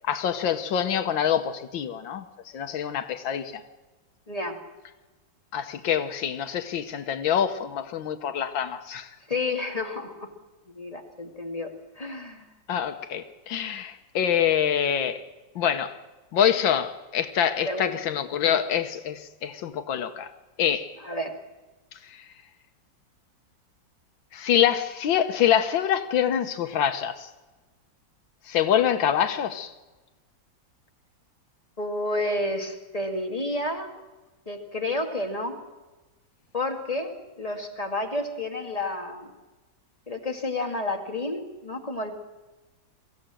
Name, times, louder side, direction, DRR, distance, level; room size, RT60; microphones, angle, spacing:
voice 1, 0.0-2.3 2.5-3.6 5.5-9.1 12.7-15.2 15.5-16.0 16.3-20.3 20.6-20.9 22.1-22.3 24.3-27.3 28.5-29.7, left 9 dB, 80° left, 1.7 m, -25 dB
voice 2, 4.3-4.6 9.3-10.3 10.7-12.5 17.6-18.0 21.0-21.4 31.8-33.9 34.5-35.6 36.5-39.3 40.1-42.2, left 2 dB, 20° left, 2.0 m, -30 dB
23.5 x 16.0 x 7.6 m
omnidirectional pair, 2.1 m